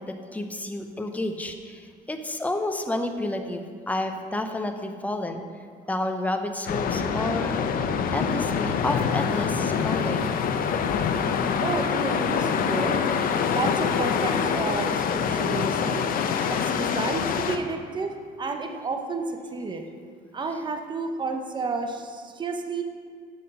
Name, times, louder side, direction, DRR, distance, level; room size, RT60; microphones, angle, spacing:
voice 1, 0.0-1.8 2.1-5.4 5.9-7.6 8.1-10.3, left 1 dB, 10° left, 5 dB, 0.9 m, -30 dB
sound 1, 6.7-17.6, left 6 dB, 55° left, 0.7 m, -25 dB
voice 2, 11.6-13.0 13.5-19.8 20.3-22.8, right 3 dB, 25° right, 4 dB, 0.9 m, -31 dB
8.0 x 7.9 x 5.5 m, 2.1 s
cardioid pair, 110°, 17 cm